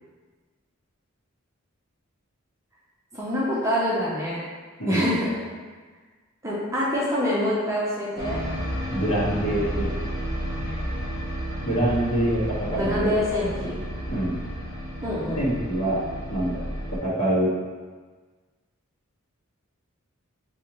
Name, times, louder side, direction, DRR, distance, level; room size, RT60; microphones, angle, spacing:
voice 1, 3.1-4.4 4.9-5.4 6.4-8.4 12.8-13.7 15.0-15.4, left 1 dB, 15° right, -7 dB, 0.5 m, -25 dB
voice 2, 4.8-5.2 8.9-9.9 10.6-10.7 11.6-13.2 14.1-14.4 15.4-16.0 16.3-17.5, right 1 dB, 80° left, -9 dB, 1.3 m, -25 dB
sound 1, 8.2-17.0, equal, 40° left, 1.0 m, -32 dB
3.7 x 2.8 x 2.9 m, 1.4 s
head